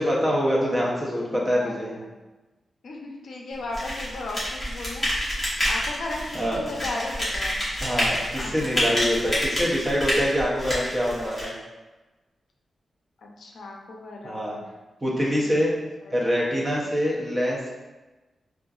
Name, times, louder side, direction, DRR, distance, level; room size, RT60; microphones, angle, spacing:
voice 1, 0.0-2.0 6.3-6.7 7.8-11.5 14.2-14.6 15.0-15.7 16.1-17.7, equal, 15° right, -4 dB, 0.6 m, -25 dB
voice 2, 1.2-2.1 2.8-5.1 5.6-7.6 8.3-9.0 9.4-9.5 13.2-14.7 15.4-15.5 16.0-16.1 16.4-16.9, left 2 dB, 70° left, -1 dB, 0.4 m, -36 dB
sound 1, 3.7-11.5, equal, 10° left, 0.9 m, -28 dB
3.7 x 2.4 x 2.3 m, 1.2 s
wide cardioid pair, 175°, 0 cm